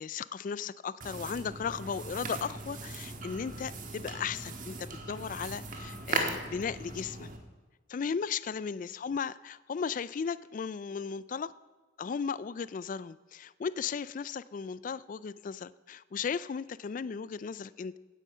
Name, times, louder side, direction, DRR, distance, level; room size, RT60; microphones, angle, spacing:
voice 1, 0.0-7.3 7.9-11.5 12.0-18.0, left 6 dB, 45° left, 18 dB, 0.3 m, -36 dB
sound 1, 1.0-7.4, right 3 dB, 45° right, 1.5 m, -38 dB
16.0 x 9.3 x 5.5 m, 1.3 s
head